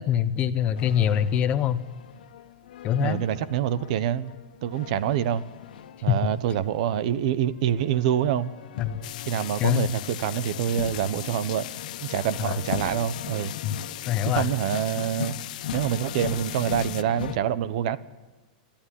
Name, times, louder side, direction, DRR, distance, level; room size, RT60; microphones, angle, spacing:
voice 1, 0.0-1.8 2.8-3.2 6.1-6.3 8.8-9.0 9.6-9.9 12.4-12.6 13.6-13.8 14.1-14.5, left 10 dB, 25° left, 1.0 m, -24 dB
sound 1, 0.8-17.4, left 9 dB, 90° left, 1.6 m, -39 dB
voice 2, 3.0-4.3 4.6-5.4 6.0-8.5 9.3-11.7 12.0-13.5 14.2-15.4 15.7-18.0, right 10 dB, 55° right, 1.1 m, -26 dB
sound 2, 9.0-17.0, left 15 dB, 65° left, 0.7 m, -38 dB
29.0 x 12.0 x 10.0 m
supercardioid pair, 160°, 5 cm